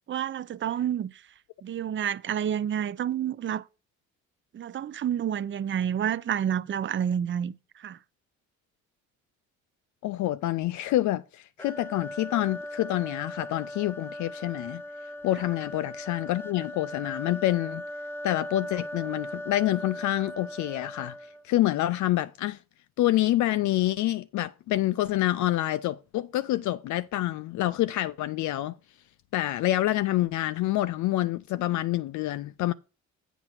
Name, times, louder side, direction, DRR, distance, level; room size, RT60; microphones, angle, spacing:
voice 1, 0.1-1.1 1.6-3.6 4.5-7.5 7.8-8.0, right 9 dB, 40° right, 0.5 m, -29 dB
voice 2, 10.0-14.8 15.2-17.8 18.2-21.2 21.4-22.6 23.0-28.8 29.3-32.7, left 15 dB, 75° left, 0.5 m, -27 dB
sound 1, 11.6-21.5, equal, 5° left, 0.6 m, -39 dB
8.0 x 5.9 x 4.4 m
cardioid pair, 90°, 30 cm